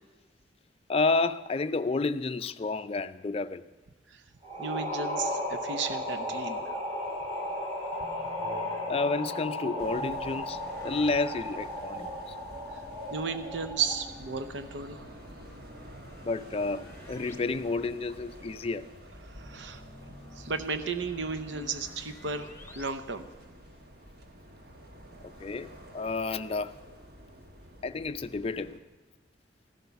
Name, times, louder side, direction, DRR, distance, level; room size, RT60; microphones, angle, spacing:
voice 1, 0.9-3.6 8.9-12.3 16.2-18.9 25.4-26.7 27.8-28.8, left 3 dB, 30° left, 0.4 m, -30 dB
sound 1, 4.4-14.2, left 1 dB, 30° right, 3.3 m, -35 dB
voice 2, 4.6-6.8 12.7-12.8 13.1-15.1 19.3-19.8 20.3-23.3, right 4 dB, 80° right, 0.7 m, -34 dB
sound 2, 8.0-11.1 12.5-17.4 17.7-17.8 19.3-22.9, left 2 dB, 15° left, 1.0 m, -51 dB
sound 3, 9.8-28.8, right 1 dB, 55° right, 1.3 m, -49 dB
15.0 x 12.0 x 5.8 m
head